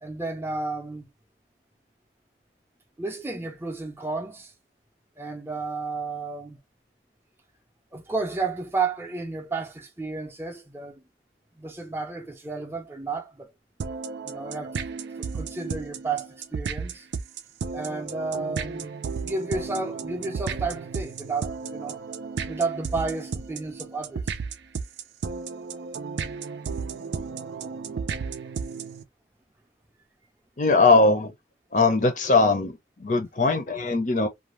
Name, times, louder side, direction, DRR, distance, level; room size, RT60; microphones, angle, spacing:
voice 1, 0.0-1.1 3.0-4.5 5.2-6.6 7.9-11.0 11.6-13.5 14.2-14.8 15.3-17.1 17.7-18.9 19.2-22.0 22.5-24.3, right 3 dB, 15° right, 0.5 m, -32 dB
sound 1, 13.8-29.0, right 5 dB, 75° right, 0.4 m, -33 dB
voice 2, 30.6-31.3 31.7-34.3, left 3 dB, 45° left, 0.6 m, -20 dB
2.5 x 2.3 x 3.1 m
head